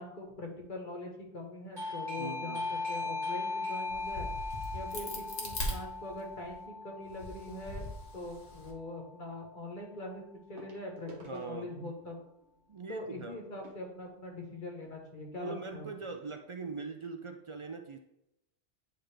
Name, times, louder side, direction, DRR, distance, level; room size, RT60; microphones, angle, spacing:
voice 1, 0.0-4.3 4.7-7.9 8.1-12.2 12.9-15.8, left 1 dB, 50° left, 1 dB, 1.4 m, -43 dB
Doorbell, 1.8-8.2, left 3 dB, 25° right, 1.1 m, -38 dB
voice 2, 2.2-2.7 11.3-11.7 12.7-13.4 15.4-18.0, right 4 dB, 55° right, 6 dB, 0.3 m, -42 dB
Crack, 3.9-6.5 7.1-8.7, left 1 dB, 70° left, 1.6 m, -40 dB
sound 1, 9.0-9.1 10.6-15.0 15.8-15.9 16.1-16.2 16.8-16.9, right 2 dB, 85° right, 1.3 m, -56 dB
8.9 x 3.8 x 3.3 m, 0.85 s
omnidirectional pair, 1.1 m